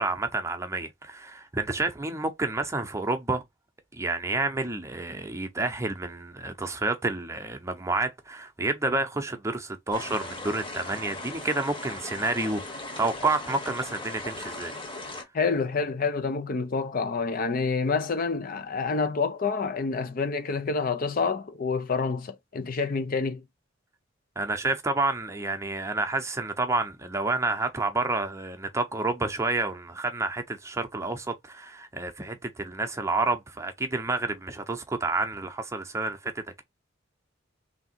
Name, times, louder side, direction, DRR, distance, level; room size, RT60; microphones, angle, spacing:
voice 1, 0.0-3.4 3.9-14.7 24.4-36.6, right 2 dB, 15° right, 0.7 m, -29 dB
sound 1, 9.9-15.2, left 2 dB, 25° left, 1.1 m, -38 dB
voice 2, 15.3-23.4, left 4 dB, 45° left, 0.5 m, -28 dB
3.4 x 2.8 x 4.3 m
head